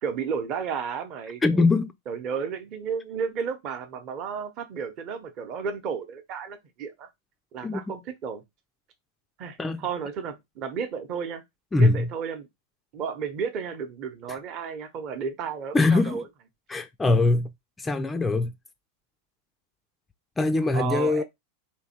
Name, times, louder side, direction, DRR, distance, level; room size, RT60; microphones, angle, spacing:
voice 1, 0.0-1.6 2.1-7.1 7.5-8.4 9.4-11.4 11.8-12.5 12.9-16.2 20.6-21.2, right 6 dB, 40° right, 0.9 m, -33 dB
voice 2, 1.4-1.9 7.6-7.8 9.6-9.8 11.7-12.1 14.3-14.4 15.7-16.2 16.7-17.5 17.8-18.5 20.4-21.2, left 3 dB, 10° left, 0.4 m, -22 dB
3.4 x 2.8 x 4.2 m
figure-of-eight pair, 90°, 0 cm